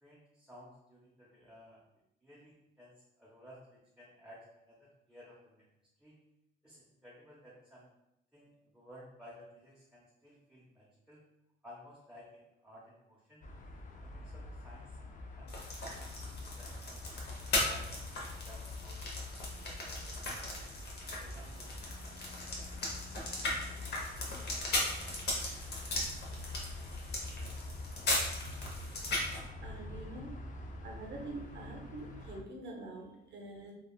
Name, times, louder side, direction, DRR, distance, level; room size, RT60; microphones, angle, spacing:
voice 1, 0.0-1.8 2.2-5.6 6.0-6.1 6.6-7.9 8.3-11.2 11.6-13.4 14.0-15.0 15.4-17.9 18.3-19.1 19.4-20.6 21.1-21.7 22.1-22.3, equal, 5° right, -7 dB, 0.6 m, -56 dB
sound 1, 13.4-32.4, left 2 dB, 40° left, 0.4 m, -45 dB
sound 2, 15.5-29.4, left 2 dB, 55° left, 0.8 m, -38 dB
voice 2, 29.6-30.3 30.8-33.7, right 2 dB, 60° right, 0 dB, 0.8 m, -45 dB
3.2 x 2.3 x 2.2 m, 0.86 s
cardioid pair, 90°, 20 cm